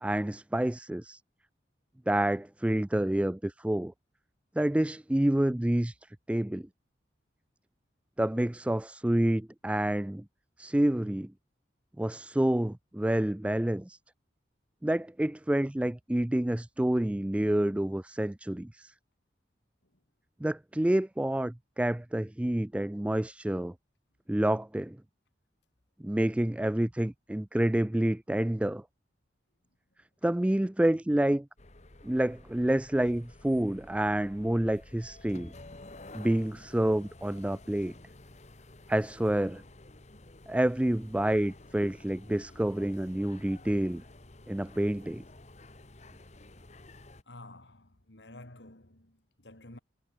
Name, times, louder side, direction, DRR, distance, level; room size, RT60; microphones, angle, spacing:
voice 1, 0.0-1.2 2.1-3.9 4.6-6.0 6.3-6.7 8.2-10.2 10.6-11.3 12.0-14.0 14.8-18.9 20.4-23.7 24.3-25.0 26.0-28.8 30.2-31.5 32.0-35.5 36.1-37.9 38.9-39.6 40.5-44.0 44.5-45.2, right 1 dB, 5° right, 0.3 m, -28 dB
Tube Underground Train Opening and Closing, 31.6-47.2, left 2 dB, 40° left, 1.7 m, -51 dB
voice 2, 47.3-49.8, left 2 dB, 75° left, 3.3 m, -51 dB
head